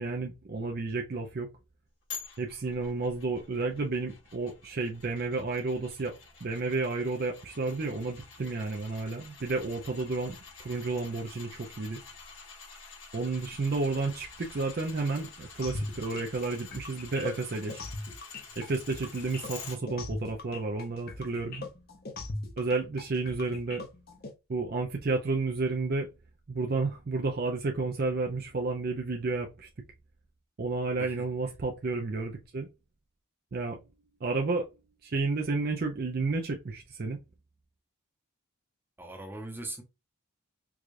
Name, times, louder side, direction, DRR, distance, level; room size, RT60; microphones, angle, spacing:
voice 1, 0.0-1.5 2.4-6.1 6.4-12.0 13.1-17.8 18.6-21.6 22.6-23.8 24.5-26.1 26.5-29.7 30.6-32.7 33.5-33.8 34.2-34.7 35.0-37.2, right 3 dB, 45° right, 0.5 m, -31 dB
sound 1, 2.1-19.8 20.2-20.3, left 5 dB, 75° left, 2.0 m, -48 dB
sound 2, 15.6-24.3, left 2 dB, 45° left, 0.7 m, -39 dB
voice 2, 39.0-39.8, right 2 dB, 10° right, 0.8 m, -40 dB
4.7 x 2.4 x 2.5 m
head